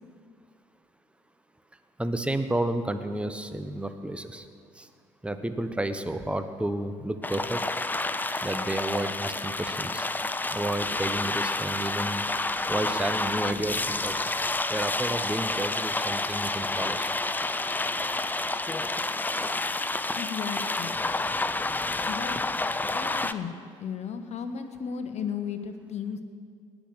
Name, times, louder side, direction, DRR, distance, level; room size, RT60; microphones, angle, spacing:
voice 1, 2.0-4.5 4.8-4.9 5.2-7.6 8.4-10.1 10.5-12.3 12.7-14.3 14.7-17.1, right 1 dB, 5° right, 9 dB, 1.1 m, -31 dB
sound 1, 7.2-23.3, left 2 dB, 10° left, 0.6 m, -29 dB
voice 2, 20.1-21.1 22.1-22.4 22.9-26.2, left 7 dB, 50° left, 8 dB, 1.4 m, -35 dB
18.5 x 6.3 x 8.1 m, 2.3 s
hypercardioid pair, 60°, 15 cm